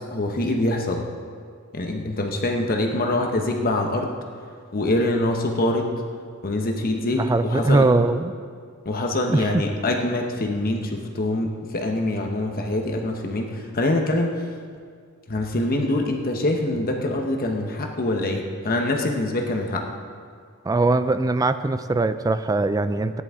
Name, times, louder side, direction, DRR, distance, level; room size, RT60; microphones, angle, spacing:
voice 1, 0.1-1.0 1.7-4.1 4.7-5.9 6.4-7.9 8.8-14.3 15.3-19.8, left 1 dB, 45° left, 2 dB, 0.9 m, -24 dB
voice 2, 7.1-8.3 9.3-9.6 20.7-23.2, right 2 dB, 15° right, 11 dB, 0.3 m, -21 dB
16.5 x 10.5 x 3.6 m, 2.1 s
head